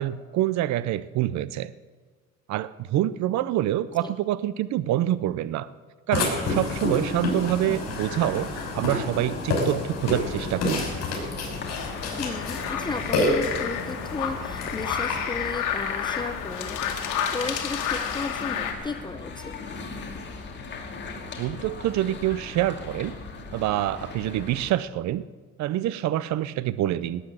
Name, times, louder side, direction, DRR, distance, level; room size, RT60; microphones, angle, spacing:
voice 1, 0.0-1.7 2.5-5.7 6.1-10.9 21.4-23.2 23.5-25.3 25.6-27.2, right 13 dB, 55° right, 16 dB, 0.6 m, -26 dB
Burping eructation, 6.1-15.2, left 2 dB, 55° left, 5.7 m, -29 dB
sound 1, 9.9-24.7, left 4 dB, 35° left, 2.5 m, -40 dB
sound 2, 11.7-18.7, left 8 dB, 70° left, 2.2 m, -31 dB
voice 2, 12.2-16.8 17.3-19.6, left 3 dB, 15° left, 8 dB, 0.7 m, -34 dB
18.0 x 9.7 x 7.4 m, 1.4 s
cardioid pair, 135°, 33 cm